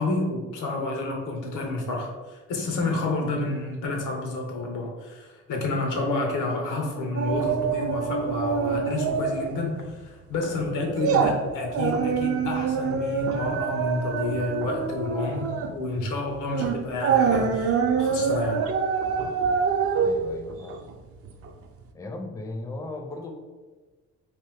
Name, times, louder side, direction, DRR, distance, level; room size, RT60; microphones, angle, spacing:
voice 1, 0.0-18.6, left 2 dB, 90° left, 2 dB, 0.8 m, -29 dB
sound 1, 7.2-9.6 9.9-10.1 10.5-21.5 21.8-21.9, right 6 dB, 50° right, 0.4 m, -25 dB
voice 2, 20.0-20.9 21.9-23.3, left 2 dB, 10° left, 3 dB, 0.4 m, -37 dB
3.3 x 2.6 x 3.4 m, 1.3 s
cardioid pair, 90°, 30 cm